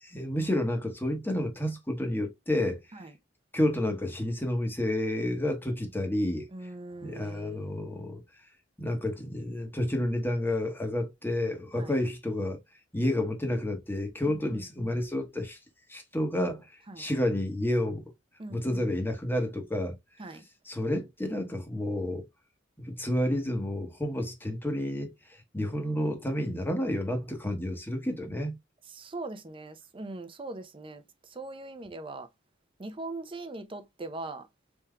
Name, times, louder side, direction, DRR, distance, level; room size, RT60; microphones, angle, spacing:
voice 1, 0.0-2.8 3.5-6.5 7.0-8.2 8.8-12.6 12.9-15.6 15.9-16.7 17.0-18.1 18.5-19.9 20.7-22.3 22.8-28.5, left 1 dB, 10° left, 1.0 m, -30 dB
voice 2, 6.5-7.8 11.8-11.9 14.3-15.0 16.9-17.1 18.4-18.9 20.2-20.4 28.9-32.3 32.8-34.5, right 2 dB, 30° right, 0.7 m, -41 dB
4.4 x 3.6 x 2.2 m
head